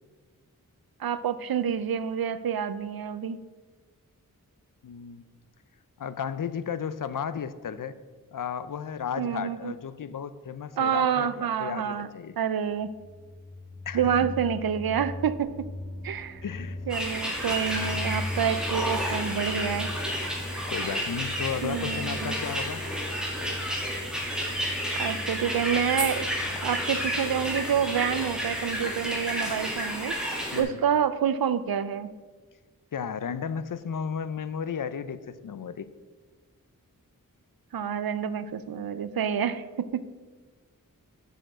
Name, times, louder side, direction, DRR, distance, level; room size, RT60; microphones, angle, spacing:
voice 1, 1.0-3.4 9.2-9.7 10.8-12.1 12.4-12.9 13.9-15.5 16.0-16.4 16.9-19.9 21.6-22.3 25.0-26.3 26.6-32.1 37.7-40.1, right 8 dB, 85° right, 14 dB, 0.5 m, -28 dB
voice 2, 4.8-5.2 6.0-7.9 8.3-12.4 13.9-14.3 16.4-16.8 20.7-22.9 30.5-30.8 32.9-35.9, left 7 dB, 65° left, 14 dB, 0.5 m, -34 dB
sound 1, 12.6-29.3, left 2 dB, 40° left, 1.4 m, -40 dB
sound 2, 16.9-30.6, equal, ahead, 2.0 m, -31 dB
6.8 x 6.4 x 6.2 m, 1.4 s
wide cardioid pair, 65°, 35 cm